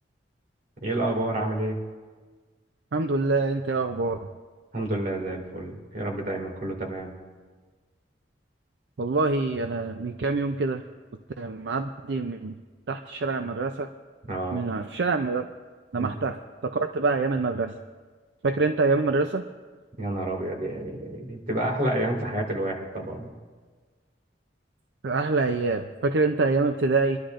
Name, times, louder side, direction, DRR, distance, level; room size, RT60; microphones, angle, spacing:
voice 1, 0.8-1.8 4.7-7.1 14.3-14.7 16.0-16.1 20.0-23.3, right 1 dB, 50° right, 0 dB, 2.2 m, -29 dB
voice 2, 2.9-4.3 9.0-10.8 11.4-12.6 12.9-13.9 14.5-15.5 15.9-17.7 18.4-19.4 25.0-27.2, right 3 dB, 75° right, 7 dB, 0.5 m, -25 dB
29.0 x 11.5 x 2.5 m, 1.4 s
head